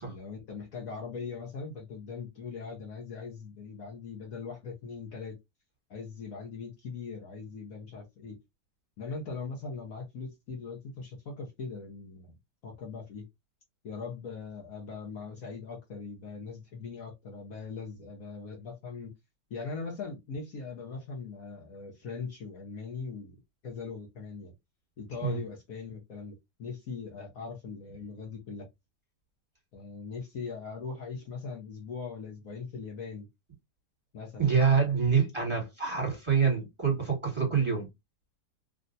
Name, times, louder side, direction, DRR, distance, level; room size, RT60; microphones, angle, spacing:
voice 1, 0.1-5.4 5.9-8.4 9.0-12.3 12.6-13.3 13.8-19.1 19.5-24.5 25.0-28.7 29.7-33.3 34.1-34.5, left 4 dB, 60° left, 1.3 m, -40 dB
voice 2, 34.4-37.9, right 6 dB, 15° right, 1.6 m, -26 dB
3.3 x 2.6 x 2.6 m
omnidirectional pair, 1.8 m